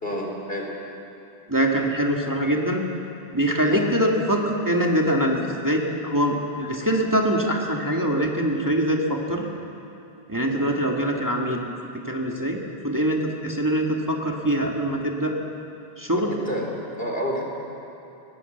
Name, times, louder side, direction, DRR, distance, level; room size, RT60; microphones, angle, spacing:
voice 1, 0.0-0.7 3.7-3.8 10.5-10.7 16.3-17.4, equal, 70° left, 0 dB, 3.7 m, -29 dB
voice 2, 1.5-2.8 3.3-9.5 10.3-11.6 12.1-12.6 12.8-15.4 16.0-16.3, right 1 dB, 20° right, -1 dB, 1.9 m, -23 dB
19.5 x 19.0 x 8.0 m, 2.8 s
omnidirectional pair, 1.0 m